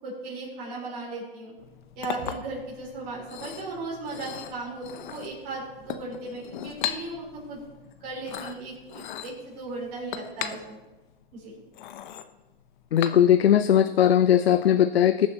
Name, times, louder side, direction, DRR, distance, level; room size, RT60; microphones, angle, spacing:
voice 1, 0.0-1.5 2.0-7.6 8.0-10.8 11.3-11.5, right 3 dB, 40° right, -5 dB, 4.4 m, -36 dB
Chink clink, 1.6-13.6, left 10 dB, 50° left, 0.9 m, -39 dB
voice 2, 12.9-15.3, left 10 dB, 80° left, 11 dB, 0.5 m, -19 dB
20.5 x 7.2 x 3.0 m, 1.1 s
hypercardioid pair, 125°, 30 cm